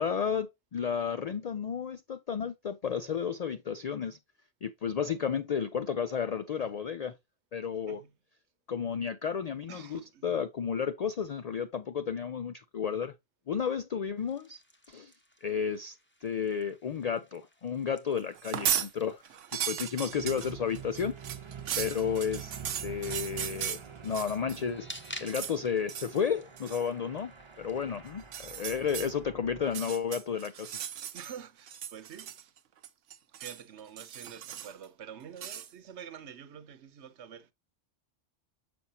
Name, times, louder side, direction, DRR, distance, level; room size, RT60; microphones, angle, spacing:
voice 1, 0.0-4.2 4.6-7.1 7.5-8.0 8.7-13.1 13.5-14.6 14.9-15.1 15.4-16.0 16.2-19.2 19.6-21.2 21.8-22.5 22.8-24.9 25.2-30.8, left 7 dB, 85° left, 0.3 m, -32 dB
voice 2, 9.7-10.4 31.1-32.6 33.3-37.5, right 8 dB, 70° right, 1.0 m, -47 dB
sound 1, 14.2-28.0, left 1 dB, 10° left, 0.8 m, -53 dB
sound 2, 18.4-18.9 19.3-24.6 24.9-25.6 25.9-26.2 26.6-26.9 28.2-29.1 29.6-31.4 31.7-32.6 32.8-33.6 34.0-34.8 35.4-35.7, right 9 dB, 90° right, 1.1 m, -36 dB
sound 3, 20.1-29.7, right 7 dB, 30° right, 0.7 m, -46 dB
7.0 x 6.0 x 2.7 m
omnidirectional pair, 1.2 m